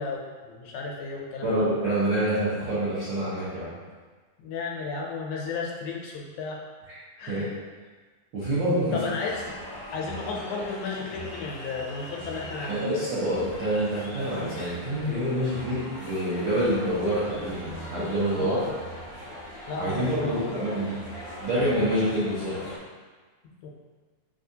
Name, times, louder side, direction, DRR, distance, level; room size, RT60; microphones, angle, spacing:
voice 1, 0.0-1.6 4.4-6.6 7.2-7.5 8.9-12.9 18.3-18.8 19.7-20.8 23.6-23.7, left 4 dB, 80° left, -1 dB, 1.8 m, -34 dB
voice 2, 1.4-3.8 6.9-7.0 7.3-7.5 8.3-8.9 12.7-18.6 19.8-21.0 21.4-22.6, right 1 dB, 80° right, -11 dB, 1.0 m, -27 dB
sound 1, 9.3-22.8, equal, 45° left, 0.6 m, -41 dB
6.5 x 2.4 x 2.7 m, 1.4 s
omnidirectional pair, 3.5 m